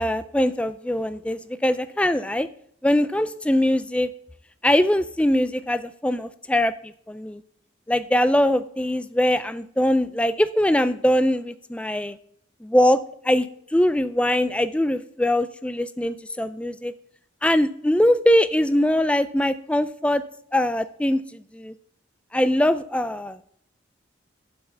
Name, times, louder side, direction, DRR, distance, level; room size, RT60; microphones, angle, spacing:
voice 1, 0.0-2.5 2.8-4.1 4.6-7.4 7.9-12.2 12.6-13.0 13.2-13.5 13.7-16.9 17.4-20.2 20.5-21.7 22.3-23.4, left 1 dB, 5° left, 13 dB, 0.3 m, -22 dB
7.8 x 5.7 x 6.9 m, 0.65 s
head